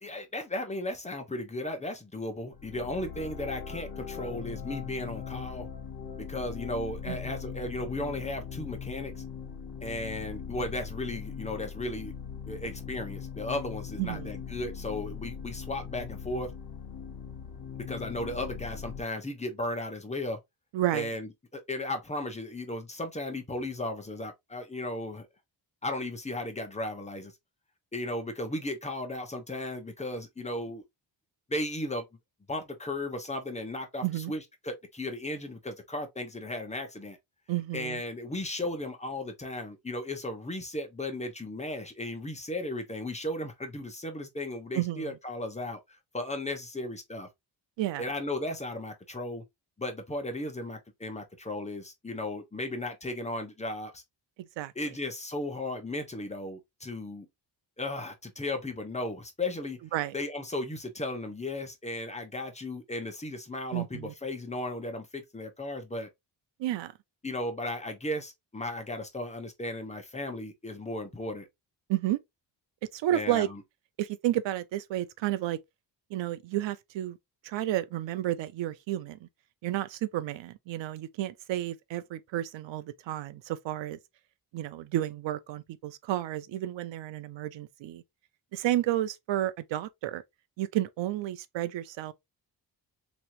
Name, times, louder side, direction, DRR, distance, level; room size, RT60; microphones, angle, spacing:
voice 1, 0.0-5.7 6.2-9.2 9.8-12.1 12.5-16.5 17.9-20.4 20.9-25.3 25.8-27.3 27.9-30.8 31.5-32.0 32.5-37.2 37.7-45.8 46.1-47.3 48.0-49.4 49.8-54.0 54.7-57.3 57.8-59.8 60.1-66.1 67.2-71.5 73.1-73.6, left 1 dB, 15° left, 0.9 m, -35 dB
sound 1, 2.5-19.0, left 7 dB, 60° left, 0.9 m, -40 dB
voice 2, 14.0-14.3 20.7-21.1 34.0-34.3 37.5-38.0 44.7-45.1 47.8-48.0 54.6-54.7 59.9-60.1 63.7-64.1 66.6-66.9 71.9-72.2 72.9-73.5 74.0-75.6 76.1-77.2 77.4-79.3 79.6-84.0 84.5-88.0 88.5-90.2 90.6-92.1, right 14 dB, 85° right, 0.6 m, -31 dB
3.4 x 3.1 x 2.9 m
cardioid pair, 115°, 43 cm